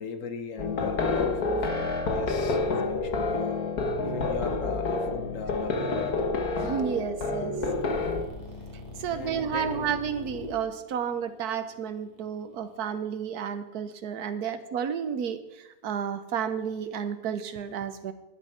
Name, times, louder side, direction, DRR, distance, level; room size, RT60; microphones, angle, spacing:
voice 1, 0.0-3.6 4.0-6.2 9.1-9.9, left 5 dB, 60° left, 8 dB, 1.4 m, -38 dB
sound 1, 0.6-8.3, left 3 dB, 80° left, 1.8 m, -28 dB
voice 2, 6.6-7.6 9.0-18.1, right 8 dB, 90° right, 11 dB, 1.4 m, -31 dB
sound 2, 7.6-12.7, left 2 dB, 25° left, 2.4 m, -42 dB
11.5 x 9.2 x 5.7 m, 0.98 s
omnidirectional pair, 1.6 m